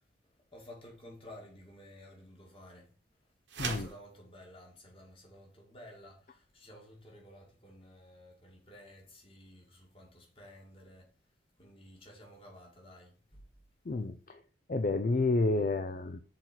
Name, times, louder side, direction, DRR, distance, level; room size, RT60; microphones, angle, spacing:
voice 1, 0.5-2.9 3.6-11.1 11.6-13.5, left 1 dB, 30° left, 2.2 m, -53 dB
sound 1, 3.5-4.0, right 4 dB, 70° right, 1.3 m, -37 dB
voice 2, 13.9-14.4 14.7-16.2, left 3 dB, 45° left, 0.5 m, -30 dB
6.6 x 4.1 x 6.0 m
head